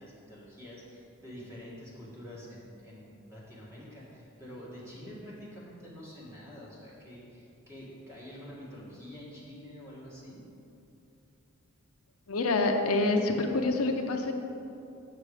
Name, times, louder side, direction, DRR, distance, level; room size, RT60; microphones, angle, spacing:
voice 1, 0.0-10.4, equal, 10° right, -7 dB, 1.9 m, -47 dB
voice 2, 12.3-14.3, left 2 dB, 80° left, 4 dB, 0.7 m, -27 dB
8.8 x 6.2 x 4.9 m, 2.7 s
head